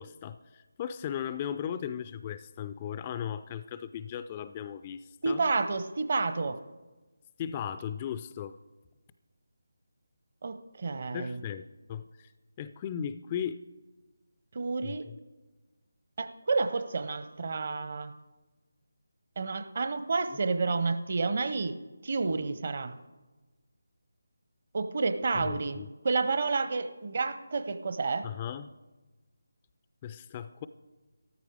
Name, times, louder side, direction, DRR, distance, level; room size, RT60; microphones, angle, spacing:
voice 1, 0.0-5.4 7.4-8.6 11.1-12.3 12.6-13.6 14.8-15.1 20.3-20.4 25.4-25.9 28.2-28.7 30.0-30.7, left 9 dB, 20° left, 12 dB, 0.3 m, -37 dB
voice 2, 5.2-6.6 10.4-11.4 14.5-15.0 16.2-18.1 19.4-21.8 22.0-22.9 24.7-28.3, right 4 dB, 40° right, 10 dB, 0.8 m, -30 dB
13.5 x 13.5 x 4.7 m, 1.2 s
figure-of-eight pair, 155°, 0 cm